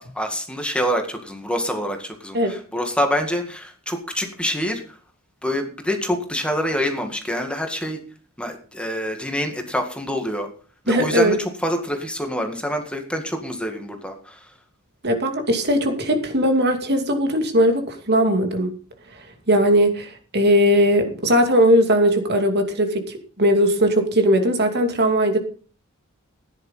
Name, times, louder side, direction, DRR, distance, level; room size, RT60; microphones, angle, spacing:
voice 1, 0.1-5.0 5.4-8.0 8.4-10.5 10.8-14.5, equal, 5° left, 4 dB, 1.9 m, -26 dB
voice 2, 10.9-11.4 15.0-18.7 19.5-25.4, equal, 50° right, 6 dB, 2.5 m, -19 dB
15.5 x 10.5 x 5.6 m, 0.41 s
head